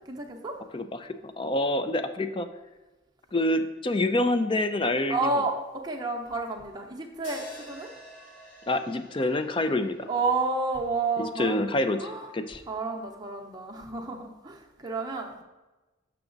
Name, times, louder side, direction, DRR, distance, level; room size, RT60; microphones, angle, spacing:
voice 1, 0.1-0.6 5.1-5.5 5.8-7.9 10.1-11.7 12.0-12.3 12.7-15.4, right 3 dB, 20° right, 1 dB, 0.8 m, -30 dB
voice 2, 0.7-2.5 3.3-5.2 8.7-10.1 11.2-12.6, left 1 dB, 25° left, 9 dB, 0.4 m, -27 dB
sound 1, 7.2-11.5, equal, 80° left, 2.0 m, -48 dB
7.1 x 5.8 x 3.9 m, 1.1 s
head